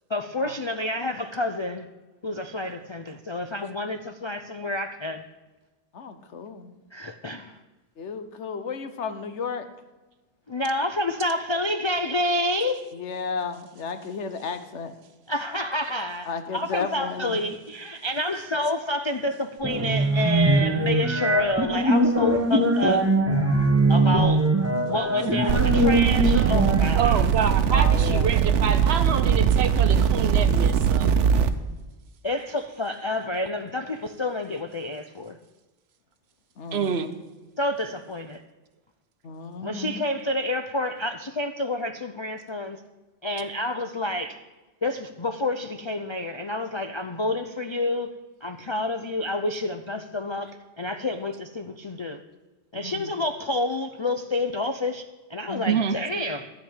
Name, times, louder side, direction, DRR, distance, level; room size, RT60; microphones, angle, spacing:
voice 1, 0.1-1.9 2.2-5.2 6.9-7.6 10.5-12.8 15.3-23.1 23.9-24.5 24.8-27.2 32.2-35.4 37.6-38.4 39.6-42.8 43.2-44.4 44.8-48.1 48.4-52.2 52.7-55.0 55.3-56.5, left 1 dB, 35° left, 7 dB, 0.4 m, -29 dB
voice 2, 5.9-6.7 8.0-9.7 12.9-15.0 16.3-17.4 24.0-24.4 27.7-28.3 36.6-36.9 39.2-40.0 52.7-53.1 55.5-55.8, left 5 dB, 75° left, 9 dB, 1.3 m, -33 dB
sound 1, 19.6-26.8, right 1 dB, 15° right, 1.1 m, -21 dB
sound 2, 25.5-31.5, right 7 dB, 85° right, 1.0 m, -21 dB
voice 3, 26.9-31.1 36.7-37.1 55.7-56.0, right 6 dB, 65° right, 10 dB, 1.1 m, -27 dB
13.5 x 5.2 x 8.8 m, 1.2 s
omnidirectional pair, 1.2 m